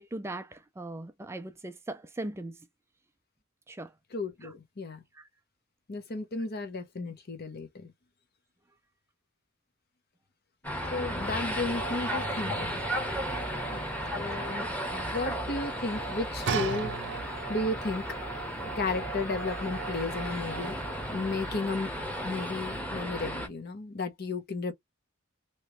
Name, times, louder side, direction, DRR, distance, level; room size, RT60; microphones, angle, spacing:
voice 1, 0.0-2.7 3.7-3.9 4.4-4.5 5.1-5.3 12.5-12.6, right 2 dB, 10° right, 0.3 m, -40 dB
voice 2, 4.1-5.0 5.9-7.9 10.9-12.8 13.7-13.8 14.1-17.0 17.5-18.0 18.8-20.7 21.1-21.9 22.2-24.7, left 3 dB, 50° left, 0.8 m, -34 dB
sound 1, 10.6-23.5, equal, 5° left, 0.9 m, -34 dB
sound 2, 11.4-21.5, right 8 dB, 85° right, 0.5 m, -45 dB
sound 3, 16.5-17.7 18.5-18.6, right 5 dB, 60° right, 0.7 m, -33 dB
3.0 x 2.9 x 3.0 m
head